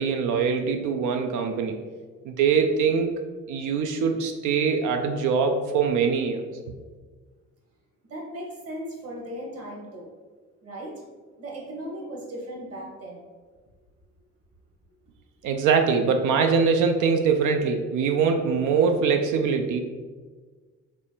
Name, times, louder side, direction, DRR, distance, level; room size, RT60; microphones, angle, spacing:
voice 1, 0.0-1.8 2.3-3.1 3.5-6.4 15.4-19.8, right 5 dB, 80° right, 5 dB, 0.5 m, -23 dB
voice 2, 8.1-10.1 10.6-11.0 11.4-13.3, right 1 dB, 55° right, -2 dB, 1.5 m, -37 dB
4.0 x 3.1 x 3.9 m, 1.4 s
cardioid pair, 90°, 30 cm